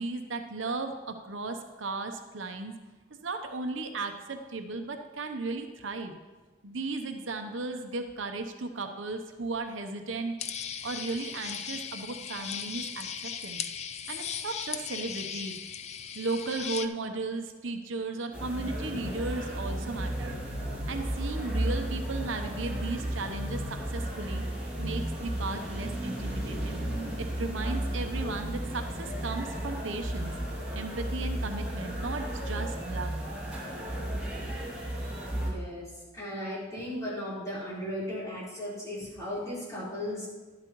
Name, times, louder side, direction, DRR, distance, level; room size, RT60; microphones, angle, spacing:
voice 1, 0.0-2.8 3.2-6.2 6.6-10.4 10.8-13.6 14.1-15.6 16.1-20.4 20.9-24.4 24.8-26.8 27.2-30.4 30.7-33.1, right 3 dB, 75° right, 5 dB, 0.8 m, -35 dB
sound 1, 10.4-16.9, left 8 dB, 35° left, 0.4 m, -37 dB
sound 2, 18.3-35.5, right 1 dB, 5° right, 2.4 m, -34 dB
voice 2, 35.4-35.9 36.1-40.3, left 1 dB, 15° left, -8 dB, 4.1 m, -36 dB
11.5 x 11.5 x 3.1 m, 1.3 s
head